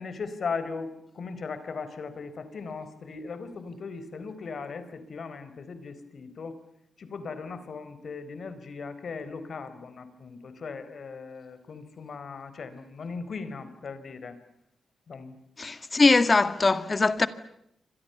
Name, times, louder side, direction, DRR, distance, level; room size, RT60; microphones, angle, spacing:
voice 1, 0.0-6.6 7.0-14.4 15.1-15.3, left 4 dB, 55° left, 4.4 m, -38 dB
voice 2, 15.6-17.3, left 3 dB, 30° left, 1.9 m, -21 dB
29.5 x 26.0 x 7.0 m
wide cardioid pair, 140°, 0 cm